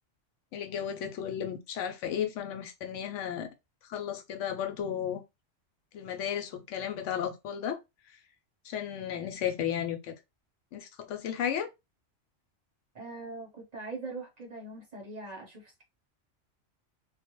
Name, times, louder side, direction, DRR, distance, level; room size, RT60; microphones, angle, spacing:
voice 1, 0.5-3.5 3.9-5.2 5.9-7.8 8.6-10.1 10.7-11.7, left 9 dB, 85° left, 0.9 m, -34 dB
voice 2, 12.9-15.8, right 3 dB, 40° right, 0.7 m, -42 dB
2.3 x 2.1 x 2.9 m
omnidirectional pair, 1.2 m